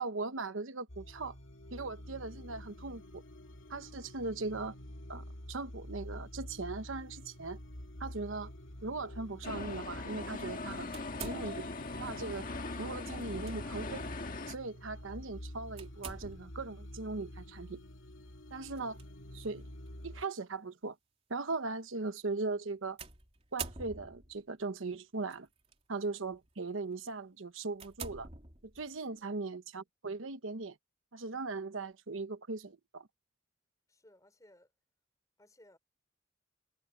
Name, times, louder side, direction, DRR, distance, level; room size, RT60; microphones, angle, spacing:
voice 1, 0.0-1.3 1.7-3.2 3.7-4.8 5.1-7.6 8.0-8.5 8.8-10.9 11.2-11.7 12.0-12.5 12.8-14.0 14.5-17.8 18.5-19.0 19.3-19.7 20.0-21.0 21.3-23.0 23.5-25.5 25.9-28.3 28.7-30.8 31.1-33.1, right 3 dB, 85° right, 1.1 m, -39 dB
sound 1, 0.9-20.2, left 1 dB, 85° left, 2.7 m, -48 dB
sound 2, 9.4-14.6, left 3 dB, 45° left, 1.6 m, -41 dB
sound 3, 10.9-11.9 13.2-13.5 14.0-14.1 15.8-16.7 18.7-19.0 19.9-20.0 23.0-24.4 25.3-25.7 26.3-26.5 27.0-27.1 27.7-29.0, right 4 dB, 30° right, 3.5 m, -45 dB
voice 2, 33.9-34.7 35.4-35.8, left 1 dB, 15° left, 5.2 m, -61 dB
head